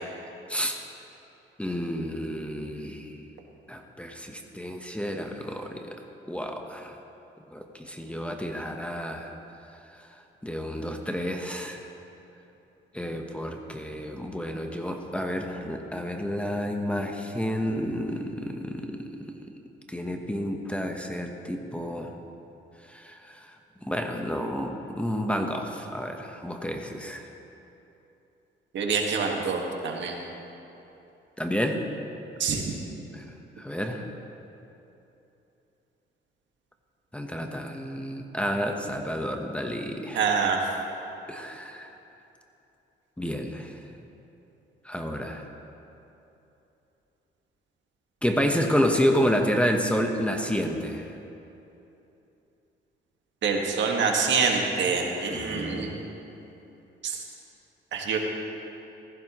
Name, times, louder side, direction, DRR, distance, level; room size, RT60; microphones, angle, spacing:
voice 1, 1.6-3.2 3.7-6.0 6.3-7.0 7.5-9.3 9.9-10.0 10.4-11.8 12.9-19.4 19.9-22.1 22.9-23.6 23.8-27.3 31.4-31.9 33.1-33.2 33.6-34.0 37.1-40.2 41.3-41.9 43.2-43.8 44.8-45.5 48.2-51.1 55.3-56.0, equal, 5° left, 3 dB, 1.0 m, -30 dB
voice 2, 28.7-30.2 32.4-32.6 40.1-40.7 53.4-56.1 57.0-57.2 57.9-58.2, right 5 dB, 65° right, 1 dB, 1.6 m, -26 dB
16.0 x 14.5 x 3.0 m, 3.0 s
cardioid pair, 90°, 20 cm